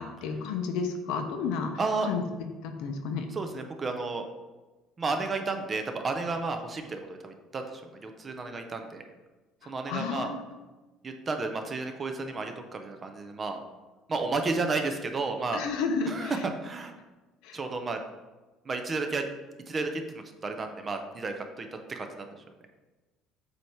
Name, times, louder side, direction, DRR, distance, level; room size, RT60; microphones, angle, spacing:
voice 1, 0.0-1.7 2.1-2.2 2.6-3.2 9.9-10.4 15.5-16.3 17.4-17.6, left 5 dB, 75° left, 5 dB, 0.8 m, -31 dB
voice 2, 1.8-2.1 3.3-4.3 5.0-9.0 9.6-10.3 11.0-13.6 14.1-15.7 16.1-16.9 17.5-18.0 18.6-19.3 19.7-22.3, right 3 dB, 20° right, 5 dB, 0.5 m, -32 dB
7.8 x 2.8 x 4.5 m, 1.2 s
cardioid pair, 170°, 0 cm